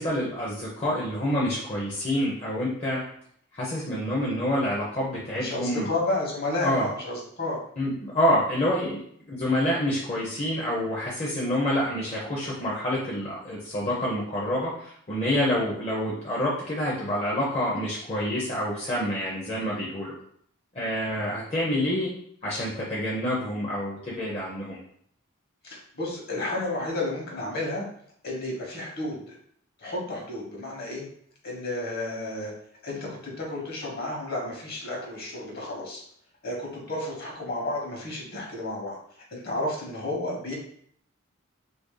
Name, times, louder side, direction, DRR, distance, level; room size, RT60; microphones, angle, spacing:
voice 1, 0.0-3.0 3.5-5.9 6.6-6.9 7.8-9.0 9.3-20.2 20.7-22.1 22.4-24.8, left 1 dB, 30° left, -5 dB, 0.6 m, -27 dB
voice 2, 5.3-7.6 25.6-27.8 28.2-29.4 29.8-31.0 31.4-32.5 32.8-36.0 36.4-39.0 39.3-40.5, left 2 dB, 50° left, -1 dB, 1.0 m, -31 dB
2.9 x 2.6 x 3.7 m, 0.64 s
head